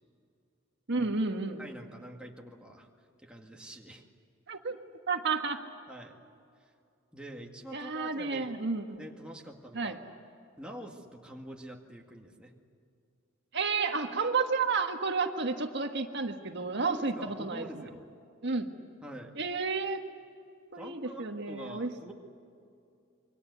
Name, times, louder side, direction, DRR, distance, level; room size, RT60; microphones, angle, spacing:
voice 1, 0.9-1.6 4.5-4.8 5.1-5.6 7.7-9.0 9.7-10.0 13.5-17.9 18.4-18.7 19.4-20.0 20.7-21.9, right 4 dB, 60° right, 4 dB, 1.6 m, -31 dB
voice 2, 1.6-2.9 3.2-4.0 5.9-6.2 7.1-8.5 9.0-9.9 10.6-12.5 16.9-18.1 19.0-19.3 20.8-22.1, right 1 dB, 5° right, 0 dB, 2.0 m, -45 dB
27.5 x 23.0 x 8.3 m, 2.5 s
head